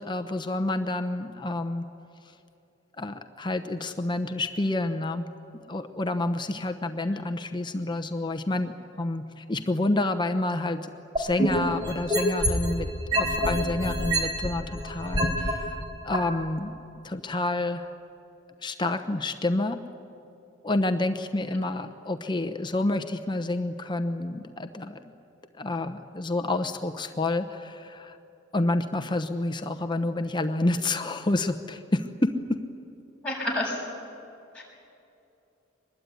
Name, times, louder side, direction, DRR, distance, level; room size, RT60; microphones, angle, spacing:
voice 1, 0.0-1.8 3.0-5.3 5.7-10.9 11.2-16.8 17.0-17.9 18.6-19.8 20.6-25.1 25.6-28.2 28.5-32.7, left 2 dB, 25° left, 8 dB, 0.9 m, -29 dB
sound 1, 11.2-12.7 13.1-15.5 16.1-16.2, right 1 dB, 25° right, 3.9 m, -25 dB
voice 2, 33.2-33.8 34.5-34.6, left 1 dB, 5° left, -5 dB, 6.7 m, -29 dB
24.0 x 20.5 x 9.3 m, 2.7 s
head